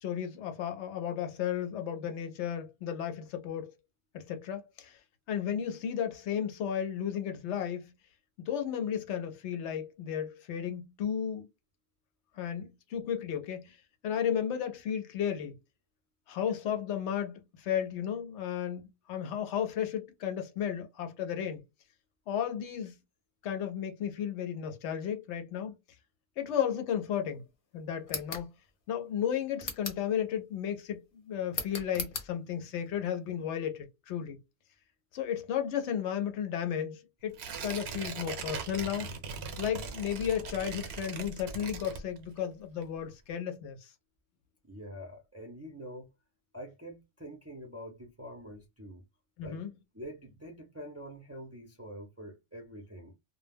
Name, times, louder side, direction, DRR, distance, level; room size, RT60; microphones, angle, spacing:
voice 1, 0.0-3.7 4.1-5.0 5.3-7.9 8.4-11.5 12.3-13.8 14.0-15.6 16.3-21.6 22.3-23.0 23.4-25.8 26.4-27.4 27.7-28.5 28.9-34.4 35.1-39.1 39.6-43.9 49.4-49.7, left 9 dB, 80° left, 0.9 m, -34 dB
sound 1, 28.0-28.5 29.6-30.1 31.5-32.3, left 4 dB, 55° left, 0.9 m, -37 dB
Tearing, 37.3-42.5 42.8-42.9, right 5 dB, 70° right, 0.8 m, -40 dB
voice 2, 44.6-46.1 46.5-49.0 49.4-49.6 49.9-53.1, equal, 20° right, 0.4 m, -45 dB
2.2 x 2.1 x 3.3 m
omnidirectional pair, 1.2 m